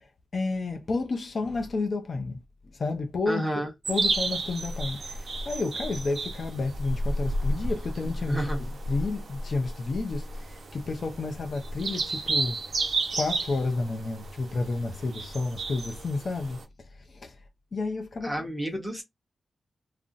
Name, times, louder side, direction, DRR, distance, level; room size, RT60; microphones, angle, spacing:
voice 1, 0.3-2.4 2.8-3.5 3.9-8.4 8.9-12.6 13.1-16.6 17.1-17.3 17.7-18.3, left 3 dB, 45° left, 0.4 m, -30 dB
voice 2, 3.3-3.7 8.3-8.6 18.2-19.0, right 1 dB, 5° right, 0.9 m, -30 dB
sound 1, 3.8-16.6, right 2 dB, 70° right, 0.6 m, -32 dB
2.4 x 2.0 x 3.8 m
wide cardioid pair, 150°, 0 cm